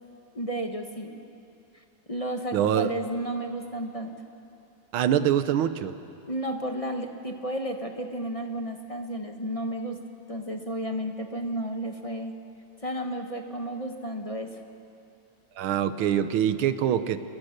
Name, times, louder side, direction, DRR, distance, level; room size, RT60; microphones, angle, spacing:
voice 1, 0.3-1.2 2.1-4.1 6.3-10.0 10.3-12.3 12.8-14.6, right 1 dB, 25° left, 4 dB, 0.9 m, -32 dB
voice 2, 2.5-2.9 4.9-5.9 15.6-17.2, right 10 dB, 80° right, 12 dB, 1.7 m, -24 dB
29.0 x 20.5 x 6.6 m, 2.7 s
omnidirectional pair, 2.3 m